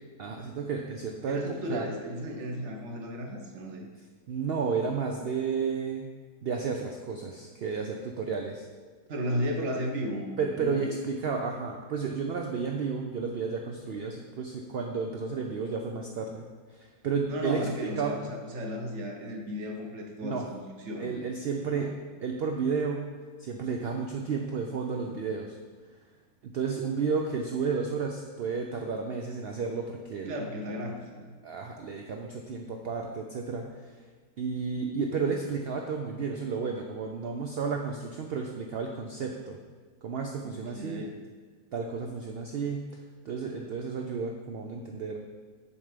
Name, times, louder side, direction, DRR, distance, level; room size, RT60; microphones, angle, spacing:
voice 1, 0.2-1.9 4.3-6.1 6.4-8.7 10.4-16.5 16.7-17.6 18.0-18.2 20.2-20.4 21.0-21.9 22.2-23.0 23.4-25.6 26.4-30.4 31.4-33.9 34.4-39.6 40.0-41.0 41.7-42.8 43.2-45.2, right 5 dB, 80° right, 2 dB, 0.5 m, -32 dB
voice 2, 1.3-3.9 9.1-10.9 17.3-21.1 21.6-21.9 30.3-31.3 40.4-41.1, equal, 55° right, 1 dB, 1.1 m, -35 dB
7.1 x 3.3 x 5.0 m, 1.5 s
omnidirectional pair, 1.6 m